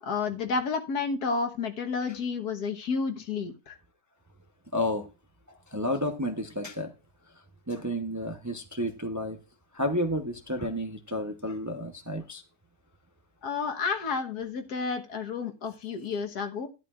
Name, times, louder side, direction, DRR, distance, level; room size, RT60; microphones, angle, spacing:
voice 1, 0.0-3.8 13.4-16.7, left 5 dB, 80° left, 1.8 m, -31 dB
voice 2, 4.7-5.0 5.7-6.9 7.7-9.4 9.7-12.4, equal, 15° right, 0.6 m, -31 dB
11.5 x 10.5 x 2.4 m
omnidirectional pair, 1.6 m